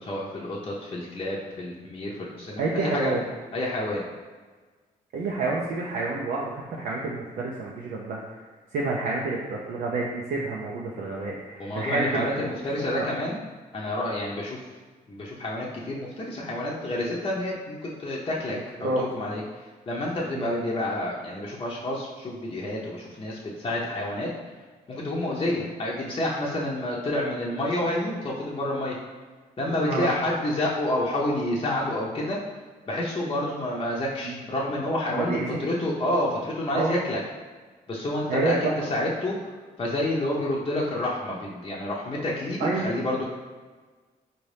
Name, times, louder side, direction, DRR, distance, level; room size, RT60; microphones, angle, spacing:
voice 1, 0.0-3.1 3.5-4.0 11.6-13.4 13.7-14.6 15.1-24.3 24.9-29.0 29.6-32.4 32.9-37.2 37.9-39.5 39.8-43.2, left 1 dB, 35° left, -4 dB, 0.7 m, -29 dB
voice 2, 2.6-3.2 5.1-8.2 8.7-12.3 12.9-13.1 18.8-19.0 20.3-20.5 29.9-30.1 34.2-34.3 35.1-35.6 36.7-36.9 38.3-38.7 42.6-42.9, right 3 dB, 80° right, -3 dB, 0.5 m, -28 dB
4.2 x 2.6 x 3.3 m, 1.4 s
cardioid pair, 70°, 16 cm